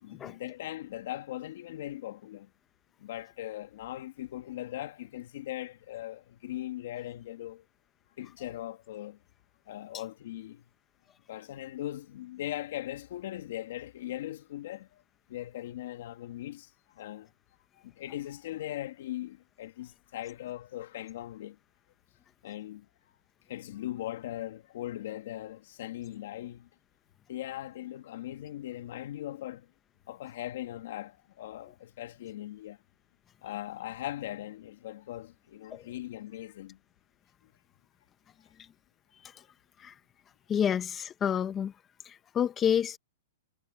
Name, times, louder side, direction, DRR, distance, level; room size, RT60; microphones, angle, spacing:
voice 1, 0.0-2.5 3.0-7.7 8.2-9.2 9.7-10.6 11.3-15.0 15.3-17.3 17.8-21.6 22.4-22.9 23.5-26.7 27.3-29.7 30.1-32.8 33.4-36.8 38.5-38.6 39.4-39.5, left 14 dB, 60° left, 2.2 m, -40 dB
voice 2, 40.5-41.7 42.0-43.0, left 8 dB, 20° left, 0.8 m, -29 dB
hypercardioid pair, 155°, 0 cm